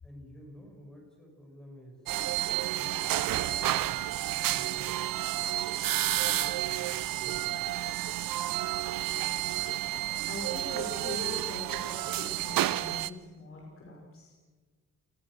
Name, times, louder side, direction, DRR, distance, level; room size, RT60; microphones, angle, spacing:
voice 1, 0.0-2.1 2.7-4.1 4.4-5.2 6.1-8.0, equal, ahead, -1 dB, 7.0 m, -50 dB
sound 1, 2.1-13.1, right 14 dB, 80° right, 0.8 m, -30 dB
voice 2, 10.3-14.3, left 2 dB, 40° left, -1 dB, 5.6 m, -42 dB
30.0 x 23.5 x 6.5 m, 1.4 s
cardioid pair, 135°, 33 cm